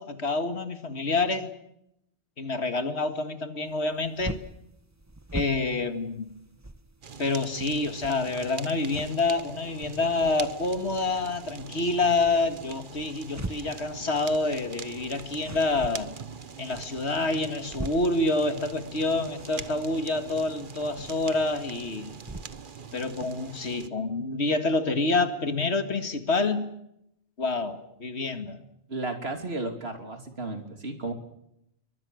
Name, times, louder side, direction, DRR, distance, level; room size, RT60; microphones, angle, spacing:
voice 1, 0.0-1.6 2.4-4.4 5.3-6.3 7.2-16.1 16.6-22.1 22.9-26.7 27.4-28.6, left 3 dB, 80° left, 2.3 m, -27 dB
sound 1, 3.7-22.5, right 2 dB, 15° right, 1.2 m, -44 dB
Fire, 7.0-23.9, right 6 dB, 50° right, 1.2 m, -43 dB
voice 2, 28.9-31.1, right 2 dB, 70° right, 3.3 m, -33 dB
27.5 x 23.5 x 6.5 m
omnidirectional pair, 1.1 m